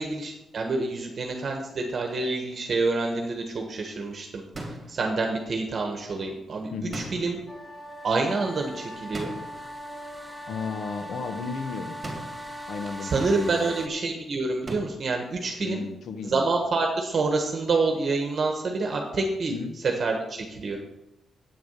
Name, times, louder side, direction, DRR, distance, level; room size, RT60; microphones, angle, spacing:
voice 1, 0.0-7.4 8.0-9.3 13.0-15.8 16.2-19.5 19.8-20.8, right 3 dB, 40° right, 2 dB, 1.3 m, -27 dB
sound 1, 4.5-5.1 6.9-7.5 9.1-9.7 12.0-12.5 14.7-15.1, right 2 dB, 25° right, 2.3 m, -38 dB
voice 2, 6.7-7.0 10.5-12.0 12.7-13.9 15.6-16.4 19.5-19.8, left 5 dB, 65° left, 8 dB, 1.0 m, -34 dB
sound 2, 7.5-13.9, equal, 5° right, 0.7 m, -39 dB
8.7 x 7.1 x 7.3 m, 0.91 s
wide cardioid pair, 155°, 0 cm